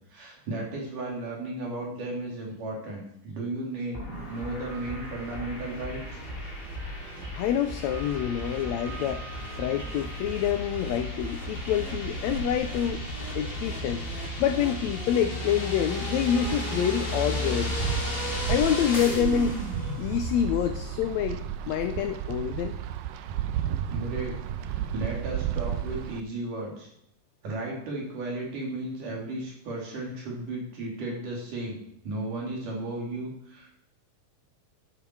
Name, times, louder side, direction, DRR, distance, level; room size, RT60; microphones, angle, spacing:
voice 1, 0.1-6.2 7.1-7.2 23.9-24.4 24.6-26.9 27.4-31.8 32.0-33.8, right 2 dB, 70° right, -2 dB, 4.8 m, -34 dB
sound 1, 3.9-20.8, left 1 dB, 15° left, 2.6 m, -34 dB
sound 2, 4.1-16.6, right 3 dB, 30° right, 2.7 m, -42 dB
voice 2, 7.4-9.2 9.6-13.0 13.3-14.0 14.4-17.9 18.2-22.7, left 9 dB, 85° left, 9 dB, 1.5 m, -27 dB
Wind, 16.4-26.2, right 10 dB, 90° right, 2.4 m, -33 dB
12.5 x 11.0 x 4.8 m, 0.73 s
omnidirectional pair, 3.9 m